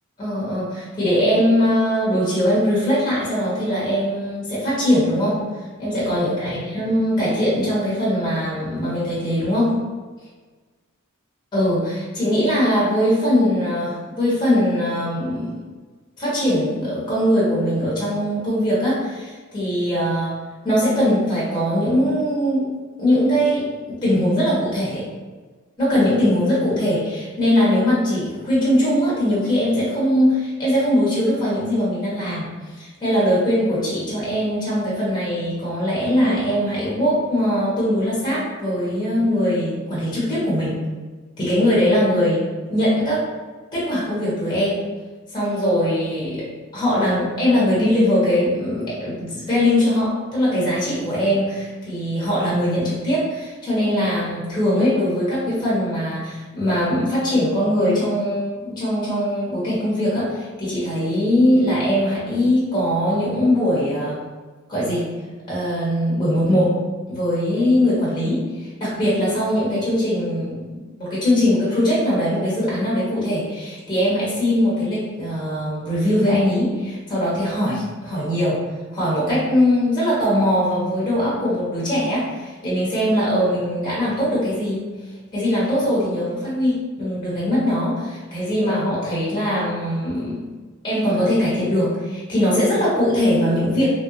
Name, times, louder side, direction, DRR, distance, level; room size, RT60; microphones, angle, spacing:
voice 1, 0.2-5.5 5.8-9.8 11.5-15.5 16.2-22.7 23.0-25.0 25.8-40.8 41.4-43.3 43.7-44.8 45.3-64.2 64.7-65.1 65.5-66.8 67.1-78.7 78.9-84.9 85.3-90.5 90.8-93.9, equal, 20° left, -7 dB, 1.0 m, -21 dB
3.2 x 2.6 x 2.7 m, 1.4 s
head